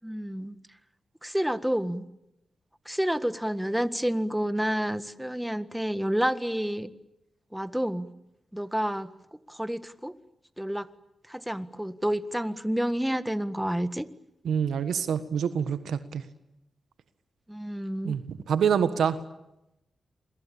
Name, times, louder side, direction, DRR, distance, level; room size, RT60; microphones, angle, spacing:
voice 1, 0.0-0.6 1.2-2.1 2.9-6.9 7.5-8.1 8.5-9.1 9.5-10.1 10.6-10.9 11.3-14.1 17.5-18.2, equal, 5° right, 13 dB, 1.7 m, -29 dB
voice 2, 14.4-16.2 18.0-19.2, right 7 dB, 85° right, 12 dB, 1.5 m, -26 dB
28.5 x 22.5 x 8.7 m, 0.89 s
cardioid pair, 55°, 0 cm